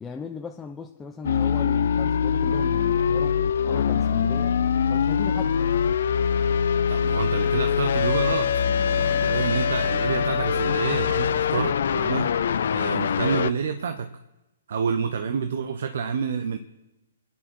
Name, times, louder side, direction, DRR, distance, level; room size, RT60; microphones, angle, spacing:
voice 1, 0.0-3.4 3.7-4.6 4.9-5.6, left 5 dB, 15° left, 0.9 m, -37 dB
sound 1, 1.2-13.5, left 7 dB, 65° left, 0.6 m, -23 dB
voice 2, 6.9-8.6 8.9-12.3 12.7-14.1 14.7-16.6, right 6 dB, 65° right, 0.9 m, -28 dB
sound 2, 7.2-12.1, right 5 dB, 25° right, 2.3 m, -45 dB
29.0 x 10.5 x 4.6 m
hypercardioid pair, 125°, 0 cm